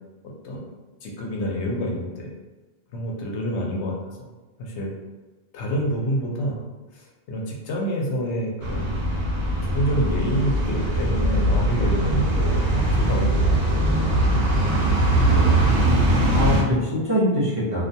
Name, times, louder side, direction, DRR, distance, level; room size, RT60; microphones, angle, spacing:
voice 1, 1.0-2.3 2.9-4.3 4.6-4.9 5.5-6.6 6.9-9.0 9.6-13.6, equal, 85° left, -1 dB, 0.9 m, -28 dB
sound 1, 8.6-16.6, right 1 dB, 85° right, 0.9 m, -21 dB
voice 2, 15.2-15.8 16.3-17.9, equal, 35° right, -10 dB, 0.7 m, -23 dB
2.4 x 2.1 x 2.7 m, 1.2 s
omnidirectional pair, 1.1 m